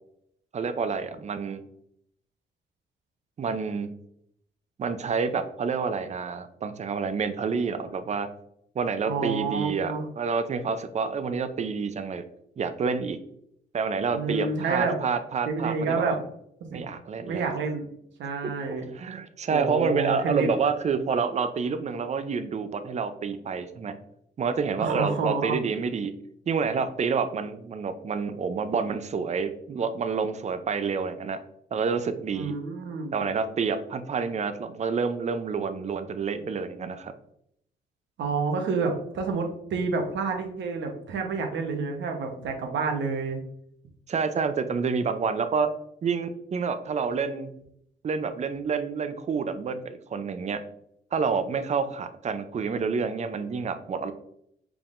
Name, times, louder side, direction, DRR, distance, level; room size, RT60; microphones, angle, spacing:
voice 1, 0.5-1.6 3.4-3.9 4.8-8.3 8.7-12.2 12.6-13.2 13.7-16.2 16.7-17.4 18.4-23.9 24.4-26.1 26.5-31.4 31.7-32.5 33.1-37.1 44.1-45.7 46.0-47.5 48.0-50.6 51.1-54.1, right 5 dB, 35° right, 10 dB, 0.5 m, -28 dB
voice 2, 9.0-10.0 14.1-15.0 15.5-16.2 16.7-16.8 17.3-17.9 18.2-18.8 19.5-20.5 24.8-25.5 32.3-33.2 38.2-43.4, right 4 dB, 70° right, 3 dB, 1.0 m, -29 dB
4.7 x 3.6 x 2.5 m, 0.72 s
cardioid pair, 90°, 20 cm